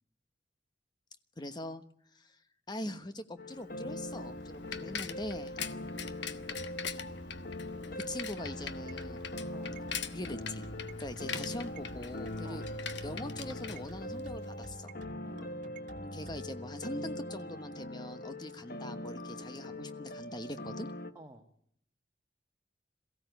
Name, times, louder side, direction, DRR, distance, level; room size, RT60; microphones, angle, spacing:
voice 1, 1.4-1.8 2.1-2.3 2.7-5.5 8.1-9.2 10.1-10.7 11.0-12.6 13.0-14.9 16.0-20.9, left 1 dB, 25° left, 10 dB, 1.2 m, -42 dB
sound 1, 3.4-21.1, left 1 dB, 55° left, 1.1 m, -42 dB
Bicycle, 3.7-14.6, left 6 dB, 80° left, 1.2 m, -43 dB
voice 2, 4.7-5.1 5.7-6.1 9.5-9.8 12.4-12.7 15.2-15.6 21.1-21.4, right 1 dB, 20° right, 1 dB, 1.7 m, -53 dB
sound 2, 8.6-16.4, right 3 dB, 45° right, 1.9 m, -51 dB
22.5 x 15.5 x 9.4 m, 0.72 s
head